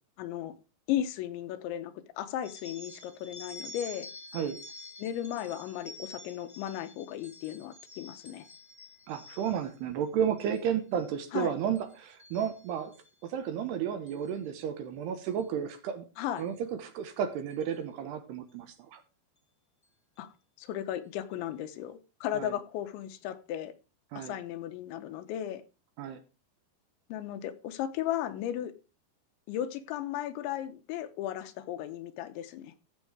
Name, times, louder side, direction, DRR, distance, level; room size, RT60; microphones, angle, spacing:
voice 1, 0.2-0.5 0.9-4.1 5.0-8.5 11.3-11.5 16.2-16.4 20.2-20.3 20.6-23.7 24.1-25.6 27.1-28.7 29.5-32.7, left 11 dB, 90° left, 3.2 m, -35 dB
sound 1, 2.4-9.7 10.2-10.6 10.9-11.4 11.7-13.1 14.1-14.3 15.2-15.4 16.4-16.5 16.9-17.0 17.5-17.7, left 2 dB, 25° left, 0.9 m, -49 dB
voice 2, 9.1-12.9 13.2-16.1 16.4-19.0 22.3-22.5 24.1-24.4 26.0-26.2, right 8 dB, 75° right, 3.0 m, -32 dB
14.5 x 6.3 x 4.9 m
omnidirectional pair, 5.3 m